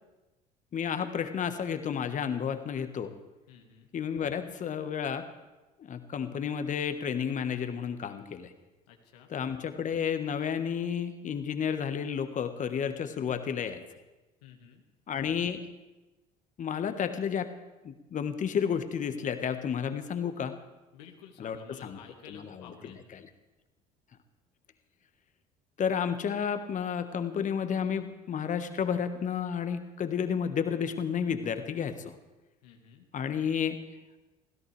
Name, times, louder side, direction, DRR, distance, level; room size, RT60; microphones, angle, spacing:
voice 1, 0.7-3.1 3.9-5.3 5.8-8.5 9.3-13.8 15.1-15.6 16.6-17.5 17.8-20.6 21.4-22.0 22.3-23.3 25.8-32.1 33.1-33.8, left 7 dB, 40° left, 9 dB, 1.4 m, -31 dB
voice 2, 3.5-3.9 8.9-9.3 14.4-14.8 20.9-23.0 32.6-33.1, left 7 dB, 70° left, 3 dB, 1.8 m, -52 dB
24.5 x 16.5 x 3.4 m, 1.1 s
figure-of-eight pair, 60°, 21 cm